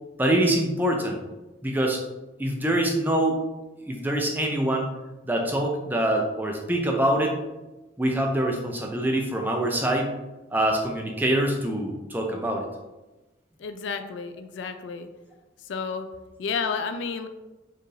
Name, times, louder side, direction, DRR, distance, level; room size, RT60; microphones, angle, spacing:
voice 1, 0.2-1.2 1.6-2.0 2.4-3.4 3.9-4.9 5.2-7.4 8.0-10.2 10.5-12.7, right 1 dB, 10° right, 1 dB, 0.4 m, -24 dB
voice 2, 13.6-15.1 15.6-16.1 16.4-17.3, left 5 dB, 70° left, 8 dB, 0.3 m, -31 dB
4.5 x 2.5 x 3.2 m, 1.1 s
head